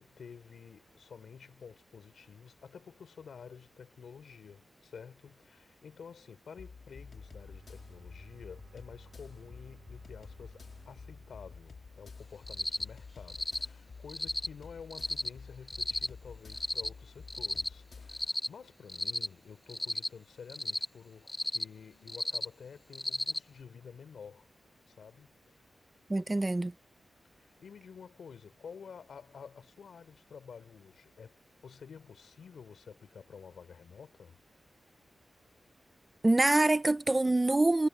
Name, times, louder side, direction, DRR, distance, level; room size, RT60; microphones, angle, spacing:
voice 1, 0.0-24.5 24.9-25.6 27.3-31.4 31.6-34.4, left 6 dB, 90° left, 3.3 m, -51 dB
sound 1, 6.6-18.3, left 5 dB, 55° left, 2.0 m, -50 dB
Bowed string instrument, 6.8-12.8, right 6 dB, 70° right, 7.9 m, -60 dB
Cricket, 12.5-12.8 13.3-13.6 14.1-14.5 14.9-15.3 15.7-16.1 16.5-16.9 17.3-17.7 18.1-18.5 18.9-19.3 19.7-20.1 20.5-20.8 21.3-21.6 22.1-22.4 22.9-23.4, left 1 dB, 15° left, 1.2 m, -33 dB
voice 2, 26.1-26.7 36.2-37.9, right 2 dB, 20° right, 0.4 m, -25 dB
wide cardioid pair, 165°, 0 cm